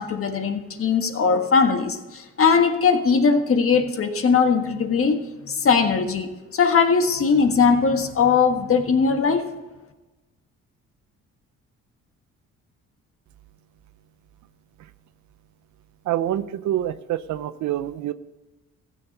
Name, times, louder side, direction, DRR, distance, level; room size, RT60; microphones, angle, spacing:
voice 1, 0.0-5.2 5.5-9.4, left 5 dB, 45° left, 6 dB, 1.5 m, -20 dB
voice 2, 16.1-18.1, right 12 dB, 75° right, 14 dB, 0.6 m, -26 dB
15.0 x 6.8 x 5.4 m, 1.1 s
cardioid pair, 90°, 30 cm